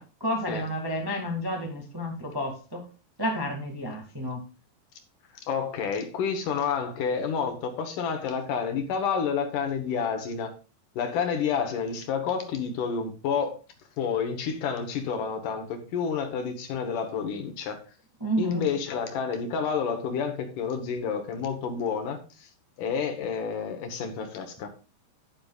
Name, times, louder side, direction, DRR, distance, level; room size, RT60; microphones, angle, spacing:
voice 1, 0.0-2.8 3.2-4.4 18.2-18.7, equal, 20° right, 0.6 m, -31 dB
voice 2, 5.3-10.5 11.0-13.6 14.0-17.8 18.4-22.5 22.8-24.7, left 6 dB, 65° left, 2.4 m, -29 dB
10.5 x 10.5 x 2.4 m
omnidirectional pair, 4.3 m